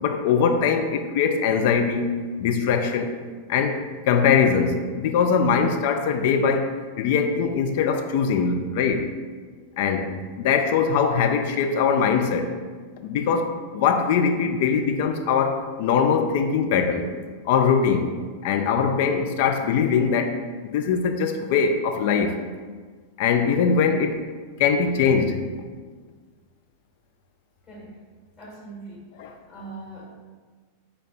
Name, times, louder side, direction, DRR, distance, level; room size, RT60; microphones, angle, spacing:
voice 1, 0.0-3.2 3.5-6.7 7.0-9.1 9.8-12.5 13.0-17.1 17.5-18.1 18.4-20.4 20.7-22.4 23.2-24.2 24.6-25.5 29.2-29.3, left 6 dB, 50° left, 5 dB, 0.3 m, -22 dB
voice 2, 27.6-28.0 28.4-29.1 29.5-30.2, right 2 dB, 25° left, -7 dB, 1.2 m, -41 dB
3.4 x 2.2 x 3.9 m, 1.5 s
figure-of-eight pair, 90°, 0 cm